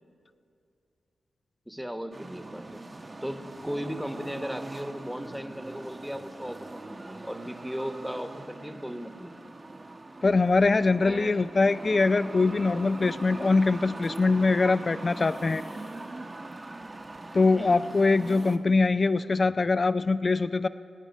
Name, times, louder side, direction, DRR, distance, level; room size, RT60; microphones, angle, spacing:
voice 1, 1.7-2.8 3.2-9.5 11.0-11.3 17.5-17.9, equal, 5° right, 8 dB, 1.1 m, -37 dB
sound 1, 2.1-18.6, right 2 dB, 35° right, 1.1 m, -41 dB
voice 2, 10.2-15.6 17.3-20.7, left 3 dB, 45° left, 14 dB, 0.4 m, -23 dB
26.5 x 8.8 x 5.3 m, 2.6 s
cardioid pair, 55°, 0 cm